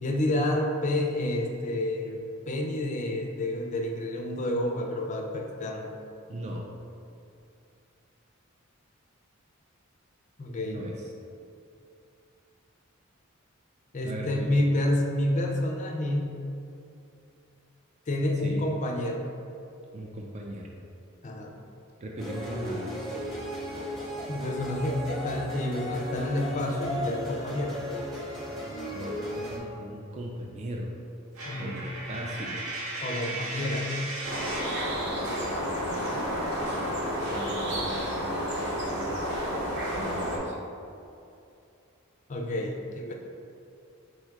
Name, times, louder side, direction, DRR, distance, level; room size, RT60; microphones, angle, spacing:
voice 1, 0.0-5.9 10.4-10.8 13.9-16.3 18.1-19.2 21.2-21.5 24.3-27.8 31.4-31.7 33.0-33.9 42.3-43.1, left 1 dB, 35° left, 2 dB, 0.4 m, -29 dB
voice 2, 6.3-6.6 10.6-10.9 14.0-14.6 18.4-18.6 19.9-20.7 22.0-23.1 28.9-30.9 31.6-32.6 35.6-36.2 37.3-37.9 38.2-39.2 40.0-40.6, right 1 dB, 35° right, -1 dB, 0.3 m, -39 dB
sound 1, 22.2-29.6, left 1 dB, ahead, 0.8 m, -35 dB
Coin (dropping), 31.3-34.9, right 2 dB, 90° right, 0.8 m, -36 dB
sound 2, 34.2-40.4, equal, 55° right, 0.8 m, -30 dB
4.3 x 2.3 x 4.5 m, 2.6 s
head